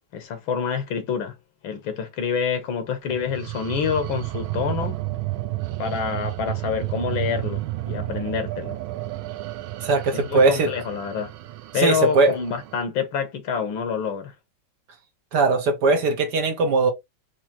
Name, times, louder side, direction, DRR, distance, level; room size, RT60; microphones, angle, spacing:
voice 1, 0.1-1.3 1.6-5.0 5.8-8.8 10.1-11.3 11.7-14.3, left 7 dB, 80° left, 1.9 m, -27 dB
sound 1, 3.1-12.8, right 17 dB, 85° right, 1.4 m, -31 dB
voice 2, 9.8-10.7 11.8-12.3 15.3-16.9, right 3 dB, 60° right, 1.5 m, -19 dB
5.0 x 3.0 x 2.9 m
omnidirectional pair, 2.2 m